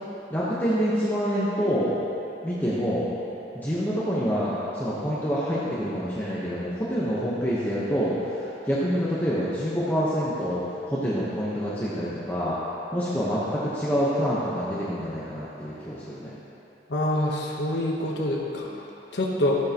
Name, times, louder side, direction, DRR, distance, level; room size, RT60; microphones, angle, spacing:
voice 1, 0.3-2.0 2.4-3.1 3.5-12.6 12.9-16.4, equal, 10° left, -9 dB, 1.0 m, -27 dB
voice 2, 16.9-18.9 19.1-19.6, left 1 dB, 90° left, -2 dB, 1.1 m, -26 dB
13.0 x 8.5 x 3.0 m, 2.9 s
head